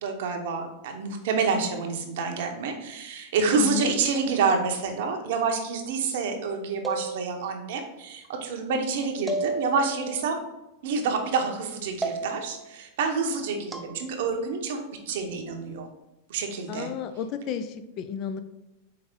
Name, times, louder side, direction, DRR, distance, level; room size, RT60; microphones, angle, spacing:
voice 1, 0.0-10.4 10.8-15.9 16.3-16.9, right 4 dB, 70° right, 4 dB, 0.8 m, -28 dB
voice 2, 3.5-4.0 16.7-18.4, left 8 dB, 45° left, 10 dB, 0.4 m, -32 dB
sound 1, 6.8-7.7 9.3-10.2 12.0-12.6 13.7-13.9, right 2 dB, 10° right, 0.5 m, -32 dB
4.7 x 3.1 x 3.7 m, 0.96 s
hypercardioid pair, 110°, 0 cm